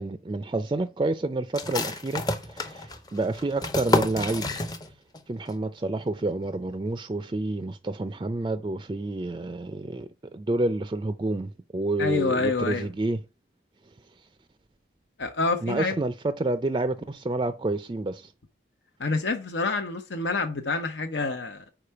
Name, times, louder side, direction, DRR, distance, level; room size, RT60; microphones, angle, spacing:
voice 1, 0.0-4.7 5.3-13.2 15.6-18.3, right 2 dB, 25° right, 0.4 m, -29 dB
sound 1, 1.5-5.2 5.5-5.6 6.0-6.5, left 2 dB, 20° left, 0.6 m, -29 dB
voice 2, 12.0-12.9 15.2-15.9 19.0-21.7, left 3 dB, 90° left, 0.8 m, -27 dB
4.9 x 4.5 x 5.6 m
head